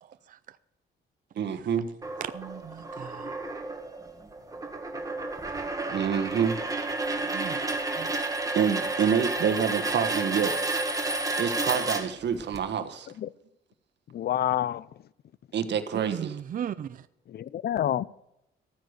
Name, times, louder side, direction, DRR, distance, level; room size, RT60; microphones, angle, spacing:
voice 1, 0.0-0.6 2.2-3.4 7.3-7.6 8.0-8.1 15.9-17.1, right 9 dB, 45° right, 0.5 m, -37 dB
voice 2, 1.4-1.9 5.9-6.6 8.5-10.5 11.4-13.1 15.5-16.3, right 7 dB, 60° right, 1.4 m, -27 dB
sound 1, 2.0-12.6, right 2 dB, 15° right, 1.9 m, -31 dB
voice 3, 14.1-14.9 17.3-18.1, left 11 dB, 55° left, 0.5 m, -28 dB
14.0 x 9.3 x 6.5 m
cardioid pair, 90°, 20 cm